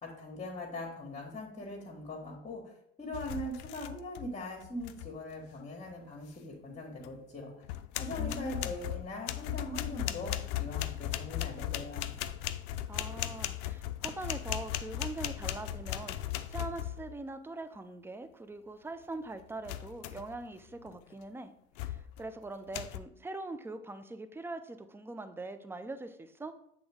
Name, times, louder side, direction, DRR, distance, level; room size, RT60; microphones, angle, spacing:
voice 1, 0.0-2.7 3.0-7.6 8.0-12.1, left 1 dB, 25° left, -3 dB, 1.5 m, -41 dB
sound 1, 3.1-4.3 4.6-5.1 7.0-7.1 7.6-17.2 19.6-20.4 20.8-21.1 21.8-22.2 22.7-23.0, left 13 dB, 65° left, 0.5 m, -37 dB
voice 2, 8.2-8.8 12.9-21.5 21.8-26.5, right 2 dB, 10° right, 10 dB, 0.5 m, -42 dB
7.8 x 3.6 x 3.5 m, 0.74 s
hypercardioid pair, 70°, 31 cm